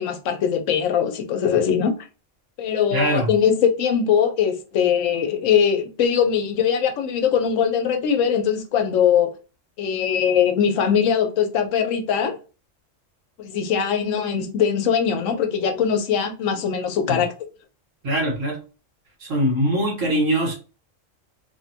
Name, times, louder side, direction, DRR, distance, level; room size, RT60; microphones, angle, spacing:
voice 1, 0.0-2.0 2.6-9.3 9.8-12.3 13.4-17.3, left 7 dB, 85° left, 1.0 m, -21 dB
voice 2, 2.9-3.3 17.1-17.2 18.0-18.6 19.2-20.6, right 1 dB, 85° right, 1.6 m, -22 dB
3.2 x 2.1 x 2.6 m
omnidirectional pair, 1.3 m